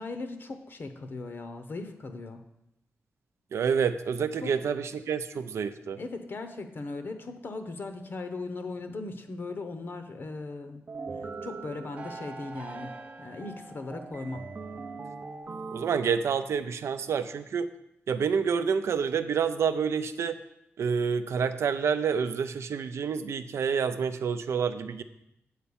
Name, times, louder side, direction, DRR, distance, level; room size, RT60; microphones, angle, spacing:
voice 1, 0.0-2.4 4.4-4.5 6.0-10.8 11.4-14.4, left 3 dB, 50° left, 7 dB, 0.8 m, -38 dB
voice 2, 3.5-6.0 15.7-17.7 18.1-20.4 20.8-25.0, right 6 dB, 75° right, 11 dB, 0.5 m, -28 dB
sound 1, 10.9-16.6, right 4 dB, 30° right, 0.5 m, -41 dB
8.3 x 4.3 x 7.0 m, 0.84 s
wide cardioid pair, 130°, 5 cm